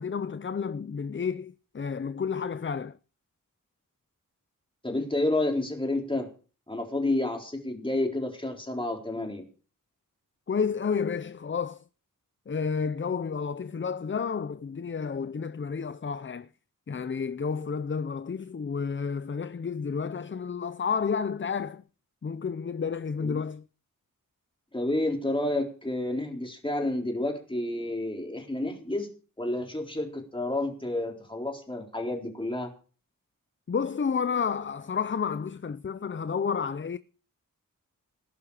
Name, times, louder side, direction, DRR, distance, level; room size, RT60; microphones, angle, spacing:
voice 1, 0.0-3.0 10.5-11.8 12.5-16.5 16.9-21.8 22.2-23.6 33.7-37.0, left 6 dB, 35° left, 0.6 m, -31 dB
voice 2, 4.8-6.3 6.7-9.4 23.2-23.3 24.7-29.1 29.4-32.7, left 1 dB, 15° left, 4.1 m, -30 dB
19.0 x 10.5 x 4.9 m
wide cardioid pair, 105°, 34 cm